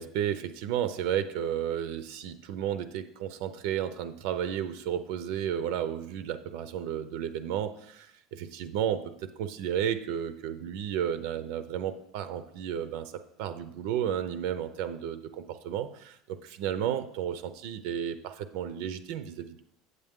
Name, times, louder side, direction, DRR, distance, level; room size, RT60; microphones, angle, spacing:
voice 1, 0.0-9.1 9.4-13.1 13.4-19.6, right 9 dB, 60° right, 11 dB, 0.5 m, -32 dB
8.0 x 8.0 x 3.6 m, 0.70 s
cardioid pair, 180°, 0 cm